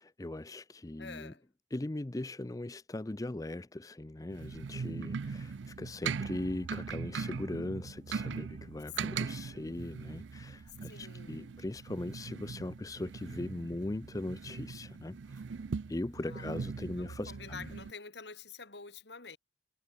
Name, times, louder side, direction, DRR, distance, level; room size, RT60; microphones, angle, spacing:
voice 1, 0.0-1.3 1.7-15.2 15.9-17.7, left 1 dB, 20° left, 0.5 m, -39 dB
voice 2, 1.0-1.4 9.0-9.3 10.7-11.6 16.2-19.4, left 4 dB, 65° left, 2.8 m, -49 dB
sound 1, 4.3-17.9, right 5 dB, 85° right, 0.5 m, -40 dB
head